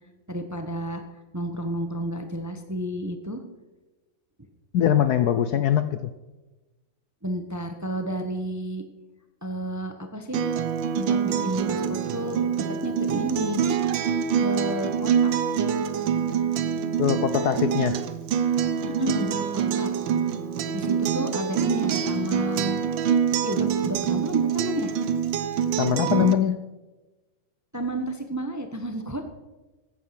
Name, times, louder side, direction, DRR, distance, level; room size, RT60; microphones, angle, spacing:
voice 1, 0.3-1.0 1.3-3.4 7.2-8.8 9.4-10.4 10.9-12.4 12.7-13.6 14.4-15.3 18.8-19.9 20.7-22.8 23.4-24.9 27.7-29.3, right 1 dB, 15° right, 6 dB, 0.8 m, -31 dB
voice 2, 4.7-6.1 17.0-18.0 25.8-26.7, left 9 dB, 70° left, 12 dB, 1.0 m, -22 dB
Acoustic guitar, 10.3-26.3, right 7 dB, 75° right, 1.5 m, -25 dB
14.5 x 9.3 x 5.9 m, 1.1 s
omnidirectional pair, 2.1 m